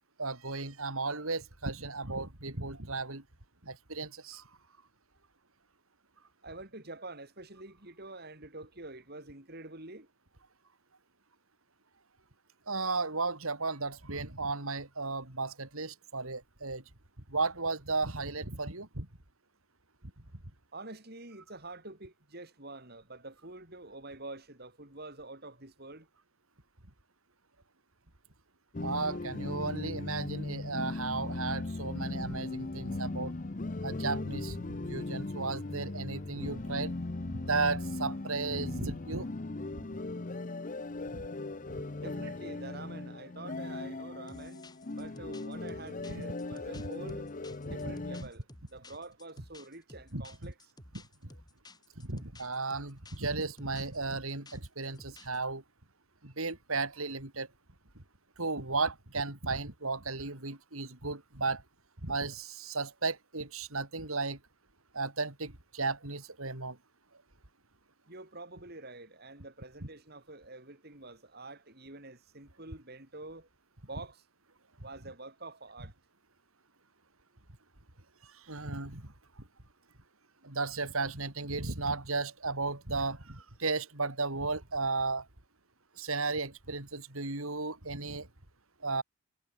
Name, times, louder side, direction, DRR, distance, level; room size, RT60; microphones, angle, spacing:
voice 1, 0.2-3.2 3.6-4.4 12.7-16.8 17.3-19.1 28.8-33.3 33.8-36.9 37.3-39.3 41.1-41.2 46.1-46.2 46.7-46.8 47.7-47.9 50.1-50.5 50.9-51.0 52.0-55.6 56.2-57.5 58.4-61.6 62.0-64.4 64.9-66.8 78.2-79.1 80.4-85.3 86.0-88.3 88.8-89.0, right 3 dB, 75° right, 3.7 m, -35 dB
voice 2, 6.4-10.1 20.7-26.1 42.0-44.6 44.9-47.3 47.7-50.5 68.1-73.5 73.9-74.2 74.8-75.9, right 2 dB, 45° right, 4.5 m, -47 dB
sound 1, 28.7-48.2, left 2 dB, 35° left, 0.7 m, -38 dB
sound 2, 44.3-55.4, left 2 dB, 20° left, 4.2 m, -54 dB
head